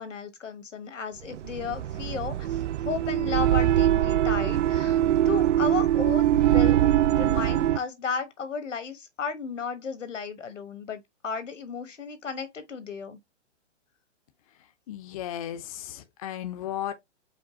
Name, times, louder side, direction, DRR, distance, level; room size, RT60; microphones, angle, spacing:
voice 1, 0.0-13.2, left 5 dB, 85° left, 1.4 m, -34 dB
sound 1, 1.3-7.8, right 12 dB, 75° right, 0.5 m, -23 dB
voice 2, 14.9-16.9, left 11 dB, 30° left, 0.5 m, -35 dB
5.1 x 2.2 x 3.7 m
hypercardioid pair, 140°, 36 cm